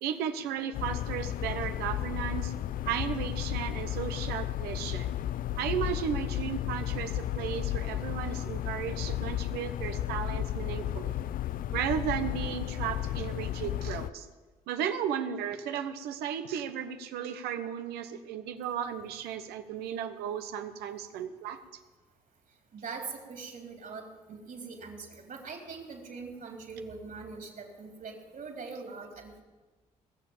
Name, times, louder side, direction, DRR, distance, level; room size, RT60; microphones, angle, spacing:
voice 1, 0.0-2.5 2.9-5.1 5.6-11.2 11.7-14.3 14.7-21.6, right 8 dB, 85° right, 9 dB, 1.0 m, -35 dB
sound 1, 0.7-14.1, left 12 dB, 60° left, 0.4 m, -33 dB
voice 2, 22.7-29.4, right 4 dB, 60° right, 2 dB, 3.7 m, -42 dB
20.0 x 7.1 x 7.3 m, 1.3 s
hypercardioid pair, 50°, 16 cm